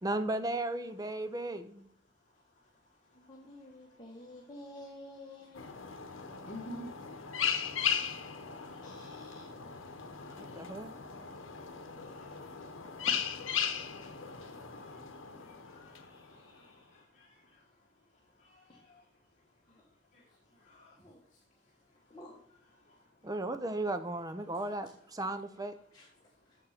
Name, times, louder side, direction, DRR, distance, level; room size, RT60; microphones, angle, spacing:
voice 1, 0.0-1.9 10.4-11.0 23.2-25.7, right 2 dB, 20° right, 10 dB, 0.5 m, -35 dB
voice 2, 3.1-5.6 8.8-10.0 13.0-13.2 14.0-14.1 15.8-17.0 18.7-18.8 19.7-19.8 20.9-21.2 22.1-22.4 24.5-24.9 25.9-26.3, left 1 dB, 20° left, -4 dB, 1.5 m, -52 dB
sound 1, 5.6-16.5, left 7 dB, 85° left, 0.9 m, -37 dB
voice 3, 6.4-6.9 7.2-7.3 7.8-8.2 8.5-8.9 10.2-10.5 12.1-12.6 14.3-14.9 15.7-15.9 17.2-17.3 18.4-19.0 20.7-20.9, equal, 40° left, -2 dB, 1.3 m, -49 dB
6.6 x 6.4 x 5.7 m, 0.69 s
head